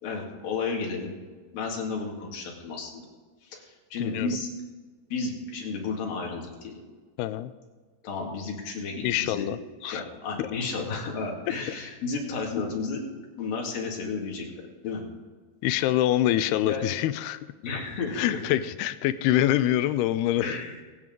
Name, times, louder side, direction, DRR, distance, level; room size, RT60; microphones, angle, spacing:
voice 1, 0.0-1.1 1.5-3.0 3.4-4.5 5.1-6.7 8.0-9.5 9.8-13.0 13.4-14.5 14.8-15.0 16.7-16.9 17.6-18.4 20.4-20.8, left 4 dB, 65° left, 0 dB, 3.8 m, -32 dB
voice 2, 4.0-4.4 7.2-7.5 9.0-9.6 9.8-10.0 10.4-10.5 15.6-17.4 18.2-20.6, left 13 dB, 85° left, 13 dB, 2.5 m, -25 dB
23.5 x 9.2 x 3.8 m, 1.4 s
omnidirectional pair, 4.6 m